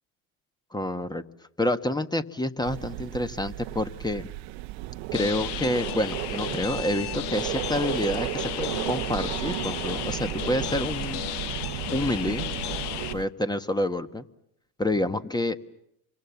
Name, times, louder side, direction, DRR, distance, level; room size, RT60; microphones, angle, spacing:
voice 1, 0.7-1.2 1.6-4.3 5.1-11.2 11.9-12.5 13.1-14.2 14.8-15.6, left 1 dB, 10° left, 11 dB, 1.5 m, -28 dB
sound 1, 2.6-13.3, right 18 dB, 70° right, 1.1 m, -34 dB
sound 2, 5.1-13.1, left 13 dB, 55° left, 1.1 m, -34 dB
30.0 x 25.5 x 7.2 m, 0.79 s
hypercardioid pair, 80°, 47 cm